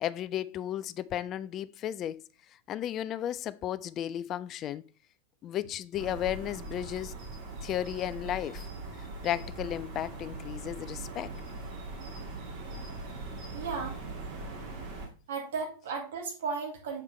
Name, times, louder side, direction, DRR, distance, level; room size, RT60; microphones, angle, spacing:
voice 1, 0.0-2.2 2.7-4.8 5.4-7.1 7.6-8.7 9.0-11.3, left 11 dB, 30° left, 0.3 m, -34 dB
sound 1, 6.0-15.1, right 2 dB, 45° right, 2.0 m, -41 dB
voice 2, 13.5-14.0 15.3-17.0, right 5 dB, 60° right, 1.9 m, -35 dB
7.0 x 4.8 x 3.2 m
figure-of-eight pair, 90°, 0 cm